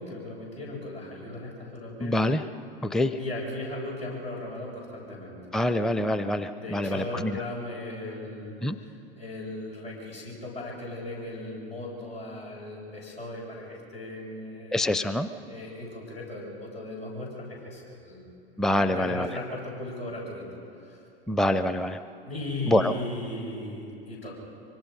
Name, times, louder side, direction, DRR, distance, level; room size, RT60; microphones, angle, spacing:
voice 1, 0.0-2.2 3.2-5.4 6.6-14.8 15.5-18.3 18.8-21.0 22.3-24.4, left 2 dB, 90° left, -6 dB, 7.8 m, -37 dB
voice 2, 2.0-2.4 2.8-3.2 5.5-7.4 8.6-8.8 14.7-15.3 18.6-19.3 21.3-22.0 22.7-22.9, left 1 dB, ahead, 11 dB, 0.6 m, -25 dB
25.0 x 24.5 x 5.5 m, 2.8 s
figure-of-eight pair, 80°, 30 cm